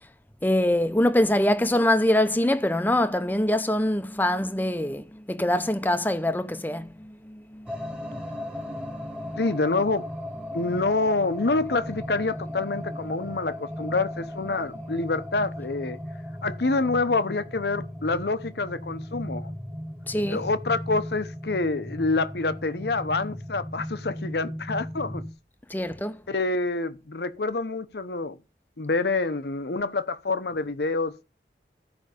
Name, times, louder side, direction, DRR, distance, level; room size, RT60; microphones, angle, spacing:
voice 1, 0.4-9.5 10.4-10.7 12.6-12.7 14.4-14.5 20.1-20.5 25.7-26.2, left 1 dB, 10° left, 0.6 m, -25 dB
sound 1, 7.7-25.3, equal, 5° right, 1.3 m, -36 dB
voice 2, 9.4-10.0 10.5-16.0 16.4-19.5 20.3-25.2 26.3-28.4 28.8-31.2, left 3 dB, 70° left, 0.8 m, -27 dB
14.0 x 5.3 x 5.2 m
head